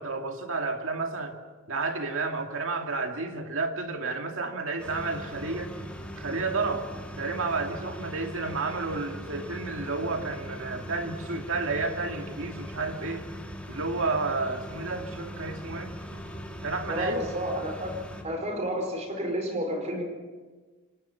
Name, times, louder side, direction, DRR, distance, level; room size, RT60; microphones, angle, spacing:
voice 1, 0.0-1.4 1.7-5.7 6.2-6.9 7.2-13.3 13.7-16.0 16.6-17.3, right 3 dB, 65° right, 4 dB, 2.4 m, -31 dB
sound 1, 4.8-18.2, equal, 5° left, 2.8 m, -40 dB
voice 2, 16.9-18.0 18.2-20.0, equal, 35° right, 4 dB, 4.7 m, -30 dB
27.0 x 18.5 x 5.8 m, 1.3 s
head